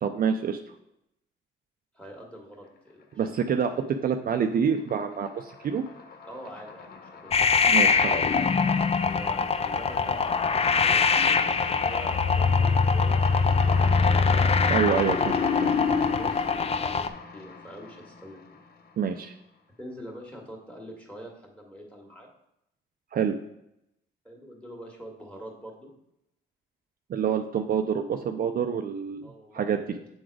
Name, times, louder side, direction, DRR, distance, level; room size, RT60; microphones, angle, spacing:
voice 1, 0.0-0.6 3.2-5.8 7.7-8.2 14.7-15.8 19.0-19.3 23.1-23.3 27.1-30.0, right 7 dB, 45° right, 6 dB, 0.5 m, -27 dB
voice 2, 1.9-3.0 6.3-7.3 9.0-14.2 15.9-17.1 17.3-18.6 19.8-22.3 24.2-25.9 29.2-30.1, equal, 5° left, 0 dB, 2.0 m, -44 dB
sound 1, 3.0-3.7 4.0-19.2, left 4 dB, 50° left, 0.9 m, -40 dB
sound 2, 7.3-17.1, left 5 dB, 30° left, 0.5 m, -23 dB
8.0 x 3.9 x 4.8 m, 0.81 s
cardioid pair, 90°, 20 cm